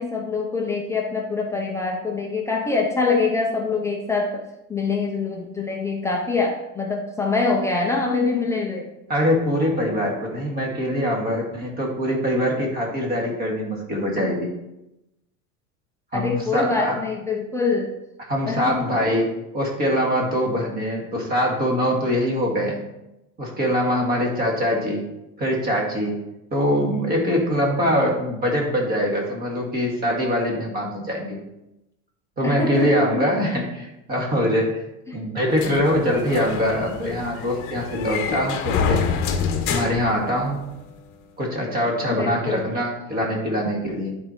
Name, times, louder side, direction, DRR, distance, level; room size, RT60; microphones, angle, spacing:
voice 1, 0.0-4.4 4.7-8.9 16.1-17.9 18.4-18.9 24.1-24.2 32.4-33.3 35.1-35.2 42.1-42.7, left 4 dB, 10° left, -1 dB, 0.4 m, -24 dB
voice 2, 9.1-14.5 16.1-17.0 18.3-22.8 23.4-25.1 25.4-26.2 26.5-31.4 32.4-34.8 35.1-39.0 39.7-40.6 41.4-44.2, equal, 25° right, -1 dB, 2.0 m, -23 dB
sound 1, 35.6-40.8, left 6 dB, 35° left, 1.0 m, -27 dB
10.5 x 4.5 x 4.4 m, 0.91 s
supercardioid pair, 160°, 37 cm